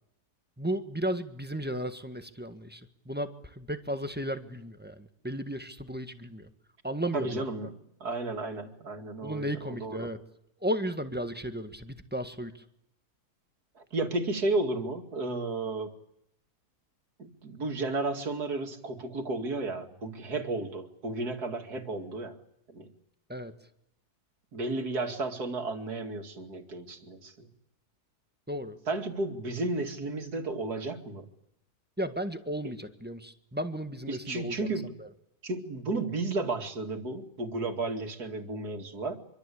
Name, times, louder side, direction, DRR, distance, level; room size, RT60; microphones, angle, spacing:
voice 1, 0.6-6.5 6.8-7.4 9.2-10.2 10.6-12.6 23.3-23.5 28.5-28.8 32.0-35.1, equal, 5° right, 8 dB, 1.5 m, -34 dB
voice 2, 7.1-10.1 13.8-15.9 17.2-22.4 22.7-22.9 24.5-27.5 28.9-31.3 34.1-34.9 35.4-39.2, right 2 dB, 70° right, 5 dB, 2.9 m, -33 dB
25.5 x 24.0 x 8.5 m, 0.76 s
omnidirectional pair, 1.7 m